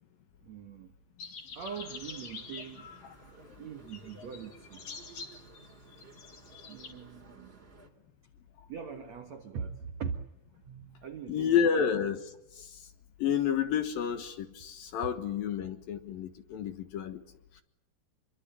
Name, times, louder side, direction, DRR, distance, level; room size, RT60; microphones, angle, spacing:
voice 1, 0.4-0.9 1.5-2.9 3.6-4.9 6.7-7.7 8.7-10.2 10.6-11.9, right 6 dB, 70° right, 6 dB, 1.6 m, -42 dB
sound 1, 1.2-3.4 3.9-6.9, left 5 dB, 40° left, 3.3 m, -46 dB
sound 2, 1.6-7.9, right 3 dB, 15° right, 2.8 m, -56 dB
voice 2, 11.3-12.9 13.2-17.2 17.6-17.7, left 8 dB, 65° left, 8 dB, 2.6 m, -30 dB
27.5 x 23.5 x 9.0 m, 0.81 s
omnidirectional pair, 5.3 m